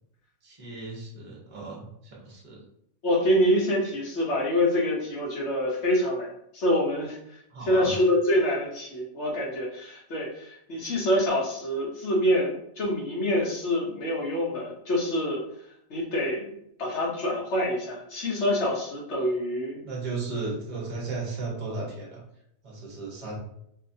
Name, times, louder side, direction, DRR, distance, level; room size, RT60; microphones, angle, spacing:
voice 1, 0.4-2.6 7.5-8.0 19.8-22.2 22.6-23.4, right 3 dB, 35° right, -3 dB, 0.8 m, -35 dB
voice 2, 3.0-15.4 15.9-19.8, equal, 80° left, -2 dB, 1.2 m, -26 dB
2.7 x 2.4 x 2.6 m, 0.74 s
omnidirectional pair, 1.1 m